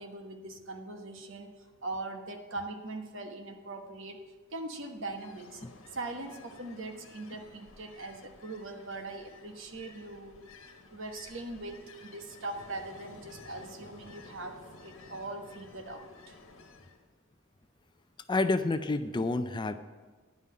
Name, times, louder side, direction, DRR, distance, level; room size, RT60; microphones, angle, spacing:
voice 1, 0.0-4.2 4.5-5.6 5.9-10.3 10.9-16.4, right 2 dB, 65° right, 5 dB, 1.2 m, -41 dB
Ocean, 4.8-17.0, left 3 dB, 75° left, 1.3 m, -53 dB
voice 2, 18.3-19.7, left 2 dB, 20° left, 10 dB, 0.4 m, -29 dB
10.5 x 5.7 x 8.3 m, 1.3 s
head